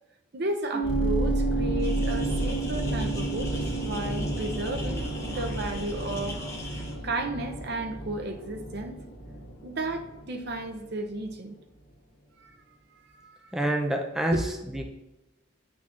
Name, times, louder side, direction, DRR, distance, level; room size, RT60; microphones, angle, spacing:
voice 1, 0.3-3.5 3.8-6.4 6.8-9.0 9.6-11.6 12.4-12.6 13.0-13.5 14.3-14.4, right 2 dB, 50° right, 5 dB, 0.6 m, -33 dB
Piano, 0.7-7.9, right 7 dB, 85° right, 2.2 m, -34 dB
sound 1, 0.8-10.8 11.1-11.3, equal, 50° left, 1.5 m, -32 dB
sound 2, 1.8-6.9, left 2 dB, 15° left, 1.0 m, -42 dB
voice 2, 13.5-14.8, right 1 dB, ahead, 1 dB, 0.4 m, -27 dB
10.0 x 6.0 x 2.5 m, 1.0 s
head